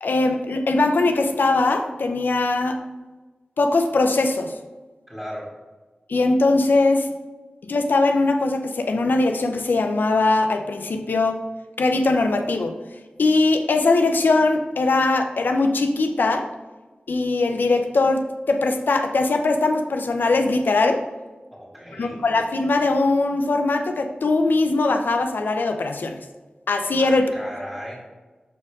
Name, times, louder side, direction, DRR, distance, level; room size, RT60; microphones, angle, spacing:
voice 1, 0.0-2.8 3.6-4.5 6.1-7.1 7.7-11.4 11.8-12.7 13.2-16.5 17.1-21.0 22.0-26.2 26.7-27.3, left 3 dB, 85° left, 5 dB, 0.6 m, -21 dB
voice 2, 5.1-5.5 21.5-22.2 27.0-28.0, equal, 5° right, -5 dB, 2.0 m, -36 dB
6.6 x 4.4 x 3.6 m, 1.2 s
wide cardioid pair, 55°, 3 cm